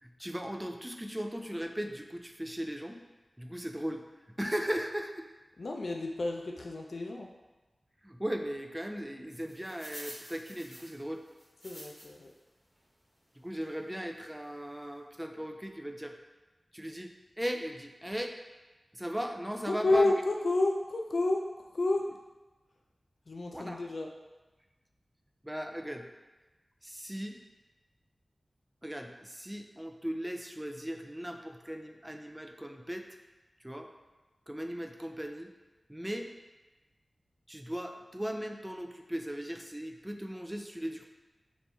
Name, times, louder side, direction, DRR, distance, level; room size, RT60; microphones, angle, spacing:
voice 1, 0.0-3.0 3.4-4.0 4.4-5.3 8.0-11.2 13.4-16.1 16.7-18.3 18.9-20.1 23.5-23.8 25.4-26.1 26.8-27.4 28.8-33.1 33.6-33.9 34.5-35.5 35.9-36.3 37.5-41.1, equal, 10° right, 4 dB, 0.4 m, -37 dB
voice 2, 5.6-7.3 11.6-12.3 19.7-21.4 21.7-22.0 23.3-24.1, left 2 dB, 70° left, 1 dB, 0.4 m, -30 dB
sound 1, 9.3-12.3 12.8-12.9 13.6-13.8 14.3-14.4 14.5-14.7, equal, 15° left, 1.2 m, -49 dB
4.1 x 3.0 x 3.5 m, 1.2 s
cardioid pair, 45°, 0 cm